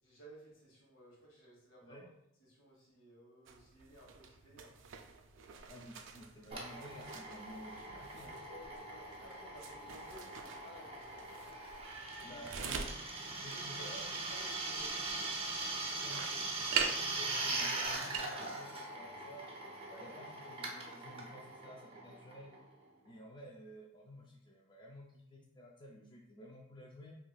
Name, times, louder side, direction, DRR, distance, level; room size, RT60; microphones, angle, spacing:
voice 1, 0.0-2.1 2.4-4.8 8.5-11.2 12.2-12.4 13.5-13.9 14.3-15.0 19.8-20.2, equal, 80° left, -3 dB, 1.4 m, -57 dB
voice 2, 1.8-2.1 5.7-8.4 12.2-13.0 13.4-14.2 16.0-19.4 20.0-22.5 23.0-27.2, equal, 25° left, -1 dB, 0.4 m, -53 dB
sound 1, 3.5-18.3, right 6 dB, 65° right, 0.4 m, -45 dB
Drill, 6.5-22.8, right 2 dB, 30° right, 0.7 m, -41 dB
4.6 x 2.8 x 2.3 m, 0.80 s
head